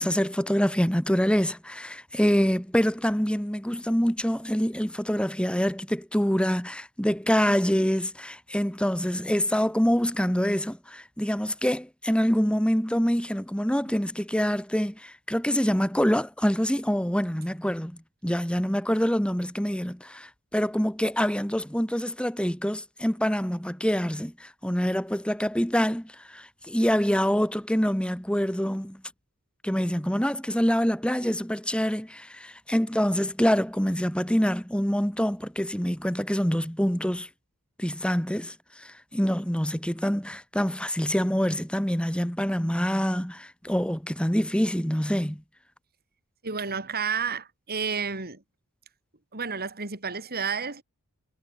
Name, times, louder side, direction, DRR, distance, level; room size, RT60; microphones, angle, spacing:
voice 1, 0.0-29.0 29.6-37.3 37.8-45.4, equal, 5° left, 2.4 m, -26 dB
voice 2, 46.4-48.4 49.3-50.8, right 5 dB, 45° right, 4.1 m, -31 dB
head